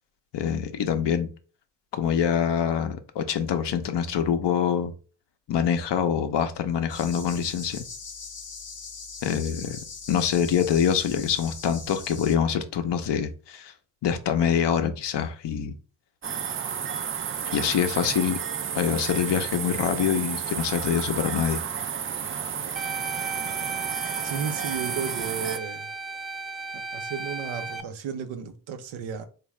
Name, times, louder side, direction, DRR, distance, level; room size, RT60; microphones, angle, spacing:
voice 1, 0.3-1.3 1.9-4.9 5.5-7.8 9.2-9.8 10.1-13.7 14.0-15.7 17.5-18.4 18.7-21.6, left 8 dB, 65° left, 0.7 m, -25 dB
sound 1, 6.9-12.4, left 5 dB, 45° left, 0.9 m, -41 dB
sound 2, 16.2-25.6, right 7 dB, 30° right, 0.4 m, -32 dB
sound 3, 22.8-27.8, right 4 dB, ahead, 0.7 m, -35 dB
voice 2, 24.2-25.9 26.9-29.2, right 7 dB, 85° right, 0.7 m, -33 dB
3.5 x 2.5 x 3.1 m
supercardioid pair, 45°, 45 cm